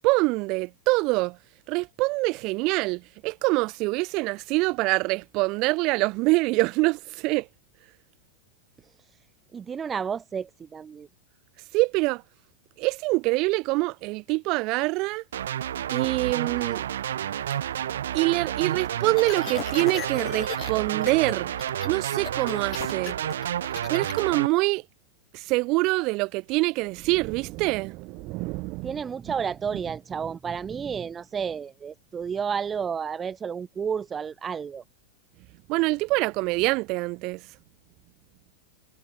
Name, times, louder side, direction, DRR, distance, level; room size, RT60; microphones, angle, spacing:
voice 1, 0.0-1.4 1.7-7.5 11.7-12.2 12.8-15.2 15.9-16.9 18.1-21.5 21.8-23.2 23.9-24.8 25.3-29.0 35.7-37.5, right 24 dB, 40° right, 1.4 m, -25 dB
voice 2, 8.8-9.2 9.5-11.1 28.8-34.8, right 7 dB, 20° right, 0.5 m, -31 dB
sound 1, 15.3-24.5, right 10 dB, 60° right, 0.9 m, -30 dB
sound 2, 19.1-20.7 21.0-21.3 21.6-24.2, left 14 dB, 35° left, 3.2 m, -37 dB
figure-of-eight pair, 90°, 0 cm